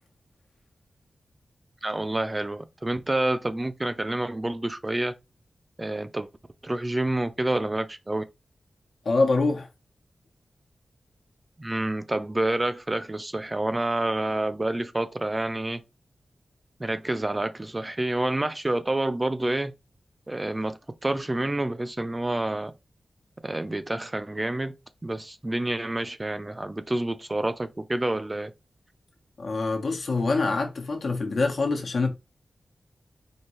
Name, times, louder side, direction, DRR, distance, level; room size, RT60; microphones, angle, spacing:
voice 1, 1.8-5.1 5.8-6.3 6.6-8.2 11.6-15.8 16.8-19.7 20.3-22.7 23.4-24.7 25.0-28.5, right 1 dB, 20° right, 0.3 m, -28 dB
voice 2, 9.0-9.7 29.4-32.1, left 3 dB, 70° left, 1.0 m, -25 dB
4.4 x 2.7 x 3.0 m
wide cardioid pair, 135°, 0 cm